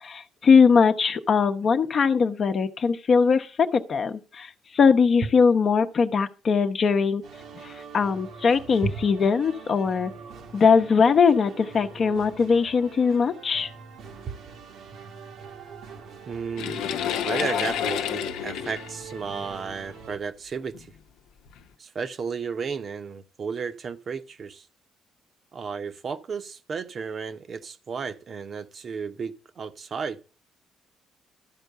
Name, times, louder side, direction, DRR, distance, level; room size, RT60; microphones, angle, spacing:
voice 1, 0.0-7.2 7.6-10.1 10.5-13.7, left 5 dB, 50° left, 0.8 m, -21 dB
sound 1, 7.2-20.2, right 5 dB, 75° right, 1.2 m, -44 dB
voice 2, 16.3-16.8 17.2-20.9 21.8-24.7 25.5-30.2, right 5 dB, 50° right, 0.9 m, -33 dB
sound 2, 16.6-19.9 20.7-20.9 21.5-21.6, left 9 dB, 90° left, 0.8 m, -29 dB
12.5 x 4.5 x 6.7 m
cardioid pair, 80°, 0 cm